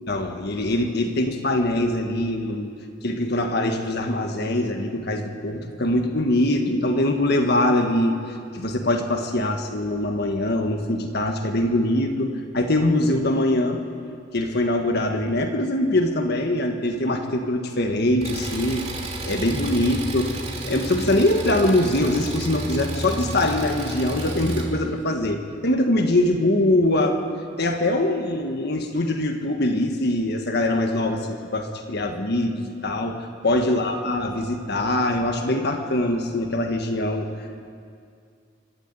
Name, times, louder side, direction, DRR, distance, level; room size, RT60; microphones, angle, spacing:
voice 1, 0.0-2.7 3.0-13.8 14.3-18.9 19.2-20.3 20.6-27.2 27.6-33.2 33.4-37.3, left 1 dB, 60° left, 4 dB, 1.6 m, -23 dB
Engine, 18.2-24.6, right 1 dB, 35° right, 3.4 m, -31 dB
25.0 x 13.0 x 8.3 m, 2.3 s
head